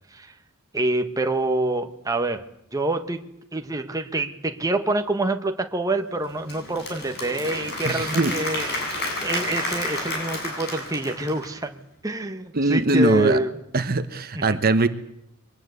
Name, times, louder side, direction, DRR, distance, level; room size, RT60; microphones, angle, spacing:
voice 1, 0.7-2.4 2.7-3.2 3.5-8.8 9.2-13.5 14.3-14.6, right 2 dB, 15° right, 6 dB, 1.3 m, -26 dB
Applause / Crowd, 6.2-11.6, left 2 dB, 50° left, 8.0 m, -31 dB
voice 2, 7.8-8.3 12.5-13.4 13.7-14.9, right 2 dB, 45° right, 10 dB, 1.1 m, -21 dB
23.5 x 20.0 x 8.3 m, 0.78 s
head